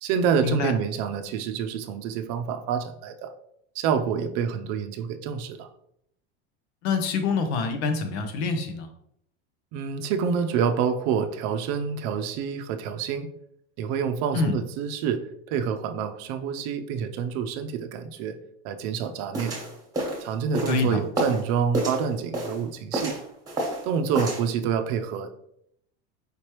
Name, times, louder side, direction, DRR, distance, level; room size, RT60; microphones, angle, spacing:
voice 1, 0.0-3.3 3.8-5.7 9.7-13.3 13.8-15.2 15.5-18.4 18.6-19.5 20.2-23.2 23.9-25.4, right 7 dB, 55° right, 8 dB, 0.5 m, -27 dB
voice 2, 6.8-8.9 14.3-14.6 20.7-21.0, left 4 dB, 85° left, 7 dB, 0.9 m, -26 dB
sound 1, 19.3-21.4 21.7-22.6 22.9-23.9 24.1-24.4, right 1 dB, 10° right, 1.3 m, -29 dB
5.0 x 3.2 x 3.0 m, 0.72 s
supercardioid pair, 150°, 31 cm